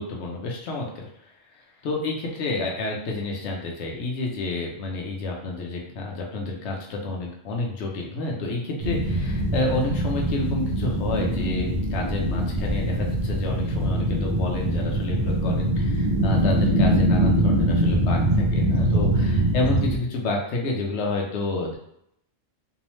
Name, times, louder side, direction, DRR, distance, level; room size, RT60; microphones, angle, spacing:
voice 1, 0.0-21.8, left 2 dB, 65° left, -1 dB, 0.8 m, -29 dB
sound 1, 8.8-20.0, right 1 dB, 60° right, 0.5 m, -23 dB
2.7 x 2.0 x 3.0 m, 0.76 s
omnidirectional pair, 1.4 m